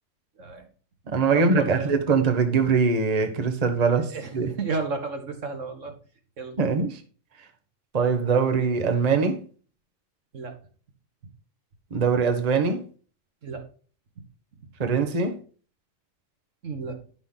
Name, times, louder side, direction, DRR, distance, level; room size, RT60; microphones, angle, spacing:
voice 1, 0.4-0.7 1.3-2.0 3.9-4.3 4.6-5.9 6.4-6.6 10.3-10.5 13.4-13.7 16.6-17.0, right 3 dB, 70° right, 1.9 m, -32 dB
voice 2, 1.1-4.5 6.6-7.0 7.9-9.4 11.9-12.8 14.8-15.4, right 5 dB, 35° right, 1.0 m, -22 dB
10.0 x 6.2 x 3.8 m
omnidirectional pair, 1.4 m